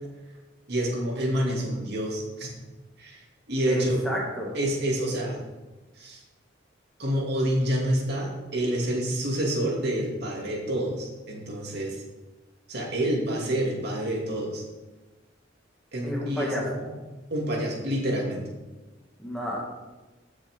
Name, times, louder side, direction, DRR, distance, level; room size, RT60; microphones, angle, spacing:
voice 1, 0.7-2.5 3.0-3.2 3.5-4.0 4.5-5.4 6.0-6.2 7.0-12.0 12.7-14.6 15.9-16.5 16.8-17.0 17.3-18.4, right 1 dB, 60° right, -2 dB, 2.6 m, -28 dB
voice 2, 3.7-4.5 16.0-16.6 19.2-19.6, equal, 5° left, -3 dB, 2.2 m, -30 dB
16.0 x 6.6 x 3.7 m, 1.2 s
head